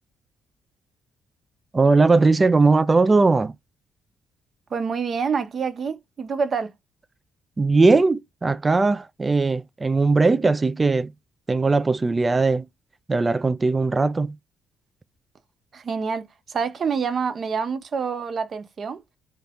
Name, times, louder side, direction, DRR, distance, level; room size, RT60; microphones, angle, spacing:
voice 1, 1.7-3.5 7.6-11.1 11.5-12.7 13.1-14.4, right 3 dB, 25° right, 0.3 m, -19 dB
voice 2, 4.7-6.7 15.7-19.0, right 5 dB, 50° right, 0.7 m, -27 dB
2.7 x 2.5 x 3.4 m
cardioid pair, 90°, 0 cm